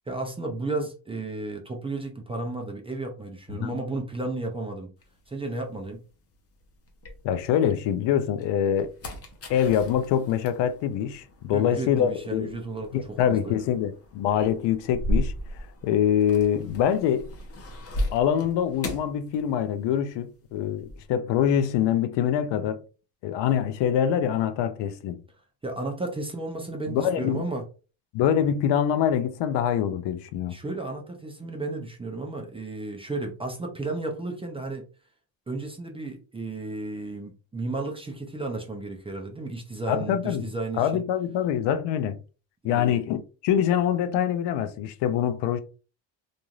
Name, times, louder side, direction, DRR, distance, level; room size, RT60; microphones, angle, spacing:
voice 1, 0.1-4.9 5.3-6.0 11.5-13.6 25.6-27.6 30.5-34.8 35.5-41.0 42.7-43.0, right 2 dB, 15° right, 0.4 m, -33 dB
sound 1, 5.0-7.8 8.2-20.0 20.2-21.1, equal, 30° left, 0.8 m, -36 dB
voice 2, 7.2-8.9 9.5-12.6 12.9-17.3 18.1-22.8 23.2-25.2 26.9-27.5 28.1-30.6 39.9-40.5 40.8-42.2 42.6-45.6, left 9 dB, 65° left, 0.5 m, -25 dB
3.0 x 2.5 x 2.3 m
cardioid pair, 115°, 46 cm